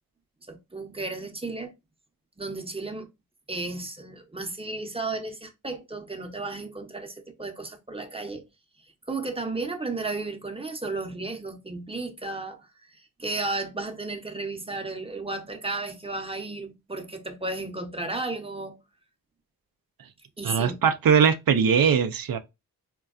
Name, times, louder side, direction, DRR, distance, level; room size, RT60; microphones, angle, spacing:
voice 1, 0.5-1.7 2.4-3.1 3.5-8.4 9.1-18.8 20.4-20.8, right 3 dB, 15° right, 0.7 m, -34 dB
voice 2, 20.4-22.4, right 7 dB, 75° right, 0.5 m, -21 dB
4.3 x 2.2 x 2.3 m
wide cardioid pair, 65°, 35 cm